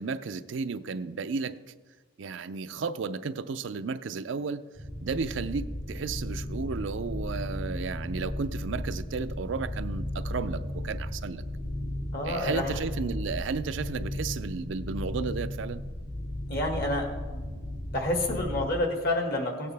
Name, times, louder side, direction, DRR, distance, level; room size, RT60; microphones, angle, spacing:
voice 1, 0.0-1.6 2.2-4.7 5.0-11.4 12.2-15.8, right 5 dB, 70° right, 0.4 m, -33 dB
sound 1, 4.7-18.7, left 1 dB, 65° left, 2.9 m, -35 dB
voice 2, 12.1-12.7 16.5-17.5 17.9-19.7, left 1 dB, 50° left, 1.9 m, -29 dB
17.5 x 8.6 x 3.4 m
head